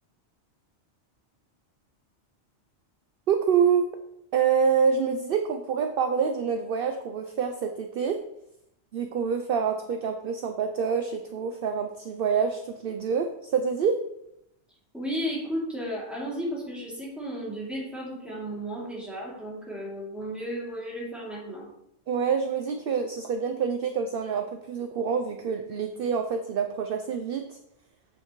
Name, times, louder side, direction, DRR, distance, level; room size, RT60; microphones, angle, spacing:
voice 1, 3.3-3.9 4.3-8.2 8.9-14.0 22.1-27.6, right 6 dB, 60° right, 6 dB, 0.7 m, -26 dB
voice 2, 14.9-21.7, equal, ahead, -6 dB, 2.7 m, -34 dB
7.9 x 7.0 x 3.1 m, 0.82 s
omnidirectional pair, 1.2 m